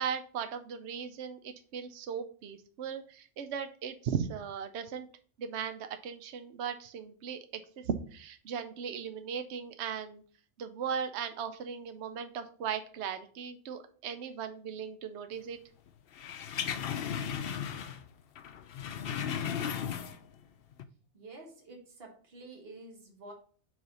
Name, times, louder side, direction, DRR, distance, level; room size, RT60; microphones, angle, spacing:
voice 1, 0.0-5.1 5.4-10.2 10.6-15.6, right 7 dB, 70° right, 8 dB, 0.9 m, -37 dB
sound 1, 16.1-18.1 18.4-20.4 20.7-20.8, left 8 dB, 60° left, 0.8 m, -35 dB
voice 2, 21.1-23.3, right 2 dB, 55° right, 0 dB, 1.8 m, -49 dB
7.1 x 3.4 x 5.3 m, 0.43 s
omnidirectional pair, 1.2 m